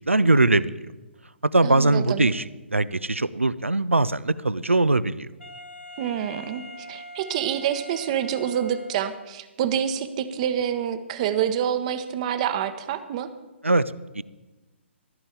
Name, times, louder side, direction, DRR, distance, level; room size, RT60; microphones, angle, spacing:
voice 1, 0.1-0.7 1.4-5.3 13.6-14.2, right 2 dB, 85° right, 18 dB, 0.5 m, -21 dB
voice 2, 1.6-2.3 6.0-13.3, right 9 dB, 30° right, 11 dB, 0.9 m, -27 dB
Wind instrument woodwind instrument, 5.4-9.3, equal, 75° left, 1.6 m, -42 dB
14.5 x 5.4 x 8.7 m, 1.1 s
figure-of-eight pair, 130°, 7 cm